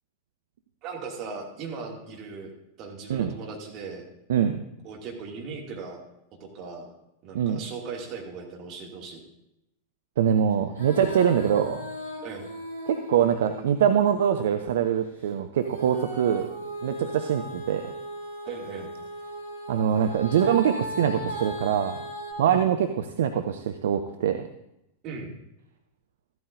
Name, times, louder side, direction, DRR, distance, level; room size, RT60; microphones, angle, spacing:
voice 1, 0.8-4.1 4.8-6.0 6.4-6.9 7.2-9.2 12.2-12.5 18.4-18.9 22.5-22.6 25.0-25.3, right 4 dB, 40° right, -1 dB, 2.3 m, -38 dB
voice 2, 4.3-4.6 7.3-7.6 10.2-11.8 12.9-16.5 16.8-17.9 19.7-22.0 22.4-24.4, right 9 dB, 60° right, 8 dB, 0.5 m, -24 dB
Female singing, 10.7-14.4 15.6-22.3, equal, 85° right, 2.9 m, -37 dB
14.0 x 12.0 x 2.6 m, 0.85 s
figure-of-eight pair, 90°, 0 cm